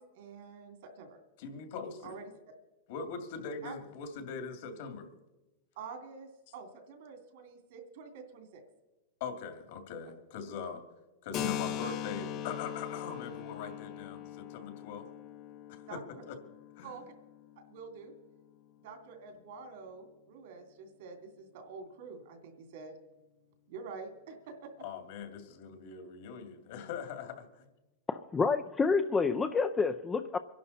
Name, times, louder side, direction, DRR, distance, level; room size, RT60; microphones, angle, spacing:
voice 1, 0.0-1.2 2.0-2.3 3.6-3.7 5.8-8.6 15.9-16.2 16.8-17.1 17.6-18.1 18.8-23.0 23.7-24.7, right 5 dB, 65° right, 5 dB, 2.7 m, -47 dB
voice 2, 1.4-2.2 2.9-5.1 9.2-10.8 11.2-15.1 15.7-16.0 16.3-16.4 16.8-16.9 24.8-27.7, left 6 dB, 65° left, 6 dB, 2.4 m, -41 dB
Keyboard (musical), 11.3-18.7, left 10 dB, 35° left, 0.8 m, -41 dB
voice 3, 28.1-30.4, left 4 dB, 15° left, 6 dB, 0.5 m, -28 dB
24.5 x 11.0 x 4.2 m, 1.0 s
supercardioid pair, 150°, 0 cm